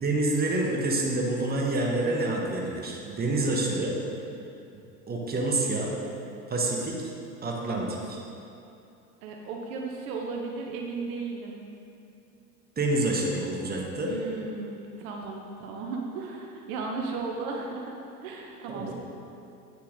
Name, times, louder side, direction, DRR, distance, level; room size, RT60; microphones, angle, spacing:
voice 1, 0.0-4.0 4.7-5.9 6.5-7.1 7.4-8.2 12.8-14.1 18.7-18.9, right 2 dB, 20° right, -1 dB, 1.3 m, -28 dB
voice 2, 9.2-11.7 14.0-18.0 18.2-18.9, right 4 dB, 65° right, 0 dB, 1.0 m, -35 dB
8.4 x 5.8 x 3.9 m, 2.7 s
hypercardioid pair, 80°, 46 cm